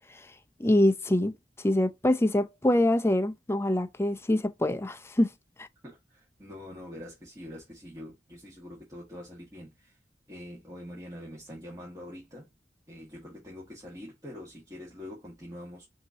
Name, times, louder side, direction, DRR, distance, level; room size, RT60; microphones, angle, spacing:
voice 1, 0.6-1.3 1.6-5.3, left 1 dB, 15° left, 0.5 m, -24 dB
voice 2, 5.8-10.0 10.3-12.5 12.9-15.9, left 1 dB, 20° right, 1.6 m, -44 dB
5.8 x 2.8 x 2.7 m
head